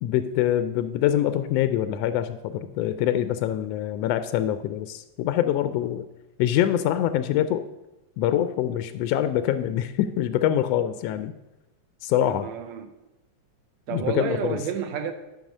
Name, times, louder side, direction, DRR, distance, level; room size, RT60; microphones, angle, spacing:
voice 1, 0.0-6.0 6.4-7.6 8.2-11.3 12.0-12.5 13.9-14.6, left 11 dB, 80° left, 11 dB, 1.4 m, -24 dB
voice 2, 12.2-12.9 13.9-15.1, right 7 dB, 75° right, 7 dB, 1.9 m, -30 dB
12.0 x 6.0 x 5.3 m, 0.99 s
omnidirectional pair, 3.3 m